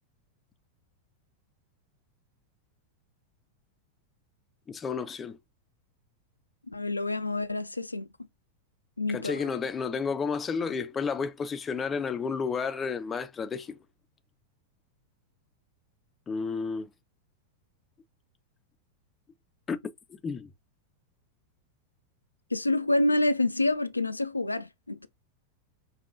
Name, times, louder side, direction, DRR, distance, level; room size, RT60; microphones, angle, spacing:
voice 1, 4.7-5.4 9.1-13.8 16.3-16.9 19.7-19.8 20.2-20.5, left 5 dB, 20° left, 0.4 m, -31 dB
voice 2, 6.7-8.1 9.0-9.5 22.5-25.1, left 2 dB, 85° left, 0.3 m, -27 dB
5.2 x 2.3 x 2.5 m
figure-of-eight pair, 90°, 0 cm